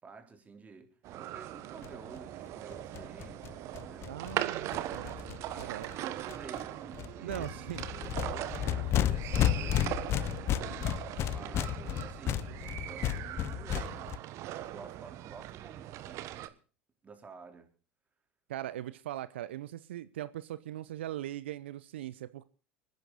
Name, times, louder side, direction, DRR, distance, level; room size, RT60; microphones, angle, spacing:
voice 1, 0.0-4.3 5.4-7.5 7.8-10.1 10.5-11.0 11.2-14.2 14.5-16.5 17.0-17.7, right 4 dB, 25° right, 5 dB, 3.8 m, -51 dB
sound 1, 1.0-16.5, right 14 dB, 55° right, 1.2 m, -40 dB
sound 2, 1.8-1.9 2.2-2.3 2.5-2.6 2.7-5.9 6.3-6.6 6.9-14.2, left 11 dB, 45° left, 0.8 m, -33 dB
voice 2, 4.1-5.9 7.2-7.8 18.5-22.4, right 13 dB, 80° right, 16 dB, 0.6 m, -40 dB
26.5 x 10.5 x 4.0 m, 0.37 s
hypercardioid pair, 80°, 6 cm